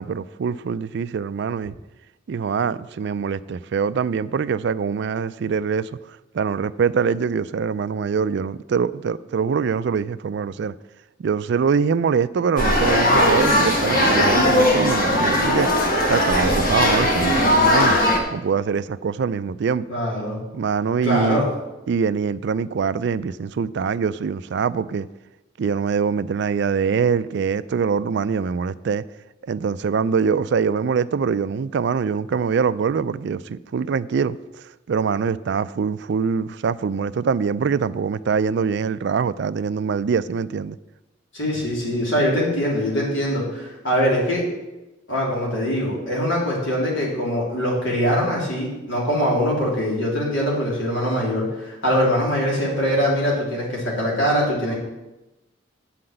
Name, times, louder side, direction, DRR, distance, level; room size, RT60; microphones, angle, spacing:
voice 1, 0.0-1.7 2.3-10.7 11.2-18.0 18.3-19.8 20.5-21.5 21.9-25.1 25.6-29.0 29.4-40.8, right 6 dB, 60° right, 0.3 m, -24 dB
sound 1, 12.6-18.2, left 1 dB, 45° left, 1.5 m, -18 dB
voice 2, 19.9-20.4 21.0-21.4 41.3-44.4 45.1-54.7, equal, 80° left, 3.4 m, -22 dB
8.5 x 5.8 x 7.8 m
head